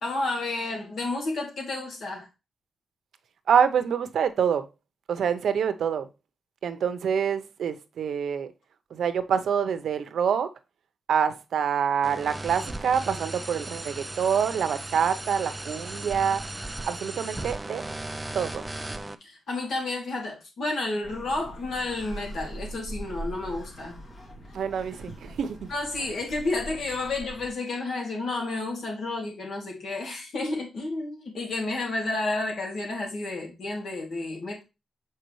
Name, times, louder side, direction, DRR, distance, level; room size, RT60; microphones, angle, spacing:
voice 1, 0.0-2.3 19.2-24.0 25.7-34.6, left 2 dB, 70° left, 2.4 m, -31 dB
voice 2, 3.5-4.7 5.1-6.1 6.6-8.5 8.9-10.5 11.1-16.4 16.8-17.8 18.3-18.7 24.5-25.7, right 7 dB, 75° right, 0.7 m, -26 dB
sound 1, 12.0-19.1, right 2 dB, 15° right, 0.5 m, -36 dB
sound 2, 21.0-27.5, right 1 dB, 50° left, 2.4 m, -41 dB
6.6 x 4.7 x 3.1 m
cardioid pair, 105°, 0 cm